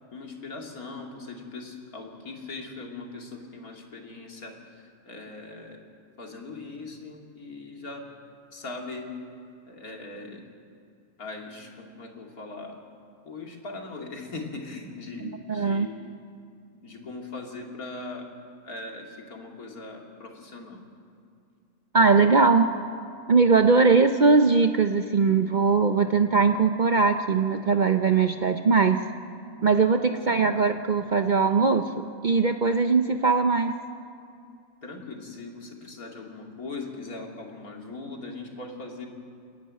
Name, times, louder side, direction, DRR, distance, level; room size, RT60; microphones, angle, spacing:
voice 1, 0.1-5.8 6.2-8.1 8.5-9.1 9.6-10.5 11.2-12.8 13.2-16.0 16.8-18.3 18.6-20.8 30.1-30.5 34.8-39.1, left 3 dB, 85° left, 1 dB, 2.9 m, -40 dB
voice 2, 15.5-15.9 21.9-22.7 23.3-29.0 29.6-33.7, right 4 dB, 50° right, 7 dB, 0.6 m, -20 dB
30.0 x 10.5 x 9.4 m, 2.4 s
omnidirectional pair, 1.5 m